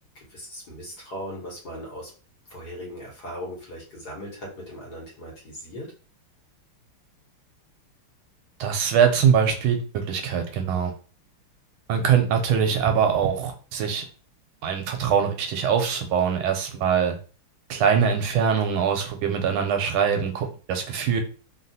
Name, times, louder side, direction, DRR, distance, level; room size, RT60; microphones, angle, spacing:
voice 1, 0.1-2.1 2.5-5.9, equal, 55° left, -3 dB, 1.5 m, -38 dB
voice 2, 8.6-10.9 11.9-14.0 14.6-17.2 17.7-21.2, right 7 dB, 80° right, 5 dB, 1.4 m, -23 dB
3.5 x 2.4 x 2.6 m, 0.37 s
omnidirectional pair, 2.3 m